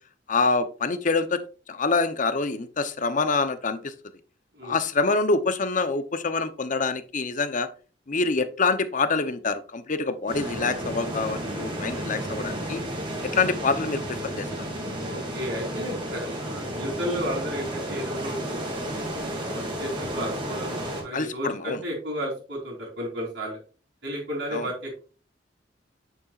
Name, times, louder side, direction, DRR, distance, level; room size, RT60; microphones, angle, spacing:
voice 1, 0.3-1.4 1.7-3.9 4.6-7.7 8.1-12.8 13.3-14.5 21.1-21.8 24.5-24.7, left 4 dB, 45° left, 11 dB, 0.7 m, -26 dB
sound 1, 10.3-21.0, right 1 dB, 25° right, 2.5 m, -32 dB
voice 2, 15.0-18.7 19.3-23.6 24.0-25.0, equal, 65° right, -6 dB, 3.2 m, -33 dB
8.5 x 6.8 x 2.4 m, 0.36 s
head